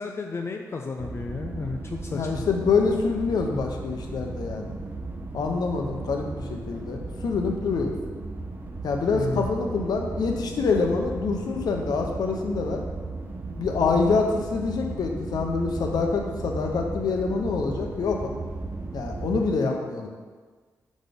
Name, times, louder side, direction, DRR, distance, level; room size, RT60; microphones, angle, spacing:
voice 1, 0.0-2.5 9.1-9.5, left 4 dB, 40° left, 2 dB, 0.5 m, -33 dB
sound 1, 1.0-19.5, right 3 dB, 30° right, 0.7 m, -35 dB
voice 2, 2.1-4.7 5.3-7.9 8.8-12.8 13.6-18.3 18.9-20.1, left 4 dB, 80° left, 2 dB, 0.8 m, -26 dB
6.2 x 4.2 x 5.2 m, 1.5 s
cardioid pair, 95°, 7 cm